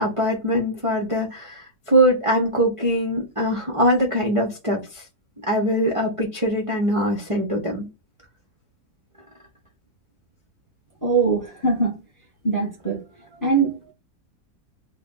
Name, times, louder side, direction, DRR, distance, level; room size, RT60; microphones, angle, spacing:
voice 1, 0.0-5.0 5.5-7.9, equal, 40° right, 0.4 m, -22 dB
voice 2, 11.0-12.0 12.4-13.0 13.3-13.9, right 4 dB, 15° left, 0.7 m, -22 dB
3.2 x 2.2 x 3.7 m
omnidirectional pair, 1.8 m